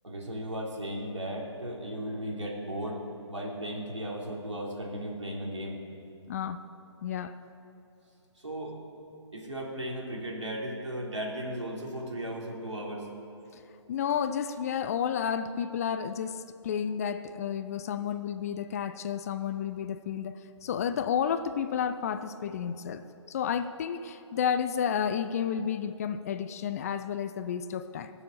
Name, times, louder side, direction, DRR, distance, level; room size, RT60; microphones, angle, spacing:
voice 1, 0.0-5.8 8.4-8.8 9.3-13.1, right 1 dB, 75° right, -1 dB, 3.2 m, -36 dB
voice 2, 6.3-6.6 7.0-7.3 13.9-28.1, left 8 dB, 30° left, 11 dB, 0.5 m, -31 dB
21.0 x 7.0 x 7.0 m, 2.7 s
figure-of-eight pair, 130°, 15 cm